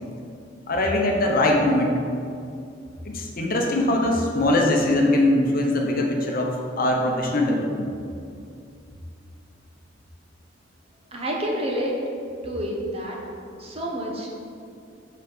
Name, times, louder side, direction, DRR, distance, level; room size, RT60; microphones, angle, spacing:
voice 1, 0.7-2.0 3.0-7.9, left 1 dB, 50° left, 1 dB, 1.0 m, -22 dB
voice 2, 11.1-12.0 12.4-13.2 13.6-14.3, equal, 30° right, -1 dB, 1.2 m, -28 dB
6.2 x 6.0 x 5.4 m, 2.4 s
head